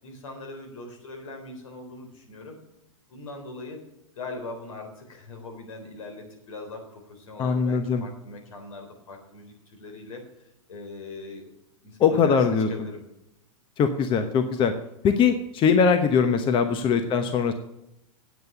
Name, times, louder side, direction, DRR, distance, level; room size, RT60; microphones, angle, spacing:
voice 1, 0.0-2.6 3.1-3.8 4.1-10.2 10.7-11.5 11.8-13.0 16.7-16.9, left 3 dB, 75° left, 3 dB, 3.8 m, -40 dB
voice 2, 7.4-8.0 12.0-12.7 13.8-14.7 15.0-17.5, left 6 dB, 30° left, 8 dB, 1.0 m, -21 dB
9.3 x 8.0 x 6.8 m, 0.84 s
hypercardioid pair, 115°, 17 cm